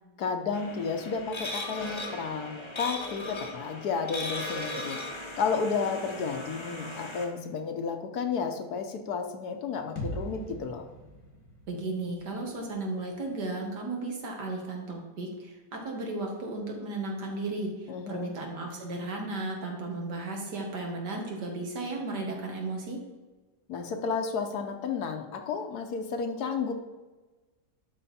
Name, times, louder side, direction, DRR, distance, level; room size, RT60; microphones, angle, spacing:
voice 1, 0.2-5.0 5.4-10.8 17.9-18.3 23.7-26.7, left 5 dB, 65° left, 5 dB, 1.3 m, -32 dB
sound 1, 0.5-7.2, left 1 dB, 25° left, 0.8 m, -38 dB
sound 2, 10.0-13.8, equal, 85° left, 2.3 m, -42 dB
voice 2, 11.7-17.7 18.1-23.0, right 2 dB, 70° right, 0 dB, 2.2 m, -34 dB
11.0 x 4.5 x 4.2 m, 1.2 s
omnidirectional pair, 1.9 m